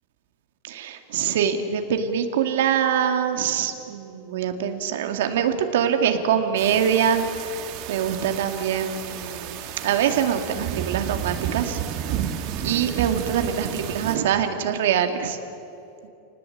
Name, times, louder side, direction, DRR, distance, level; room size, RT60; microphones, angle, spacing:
voice 1, 0.6-7.5 7.9-11.8 12.6-15.4, right 8 dB, 75° right, 6 dB, 2.4 m, -24 dB
sound 1, 6.6-14.2, right 9 dB, 40° right, 2.1 m, -32 dB
28.5 x 19.5 x 8.8 m, 2.7 s
supercardioid pair, 175°, 0 cm